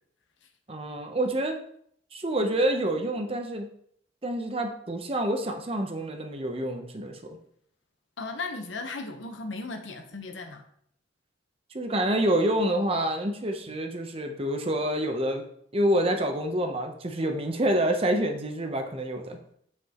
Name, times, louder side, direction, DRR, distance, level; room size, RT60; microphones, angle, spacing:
voice 1, 0.7-1.6 2.1-3.7 4.2-7.2 11.7-15.4 15.7-19.4, right 1 dB, 30° right, 4 dB, 0.8 m, -27 dB
voice 2, 8.2-10.6, left 3 dB, 80° left, 5 dB, 1.0 m, -36 dB
7.7 x 5.8 x 3.0 m, 0.66 s
head